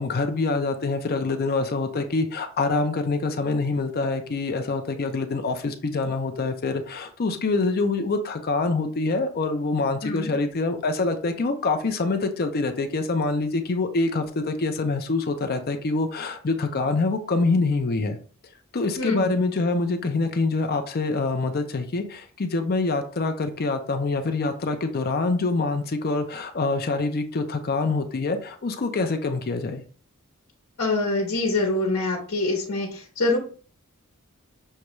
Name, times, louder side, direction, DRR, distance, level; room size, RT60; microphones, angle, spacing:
voice 1, 0.0-18.2 18.7-29.8, left 3 dB, 45° left, 7 dB, 0.5 m, -25 dB
voice 2, 19.0-19.4 30.8-33.4, left 2 dB, 65° left, -1 dB, 1.1 m, -25 dB
6.4 x 2.3 x 3.0 m, 0.41 s
head